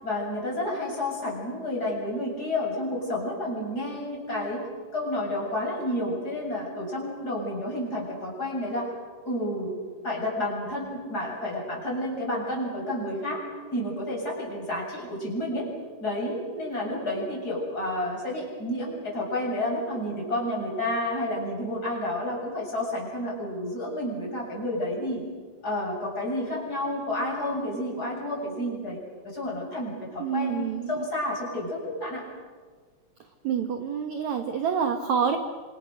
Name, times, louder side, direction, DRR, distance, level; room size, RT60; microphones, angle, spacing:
voice 1, 0.0-4.7 4.9-8.9 9.2-9.7 10.0-13.4 13.7-15.7 16.0-25.3 25.6-32.2, left 1 dB, 20° left, -2 dB, 7.7 m, -30 dB
voice 2, 30.2-31.1 33.4-35.4, right 7 dB, 60° right, 6 dB, 2.0 m, -27 dB
28.5 x 26.5 x 6.5 m, 1.5 s
omnidirectional pair, 5.0 m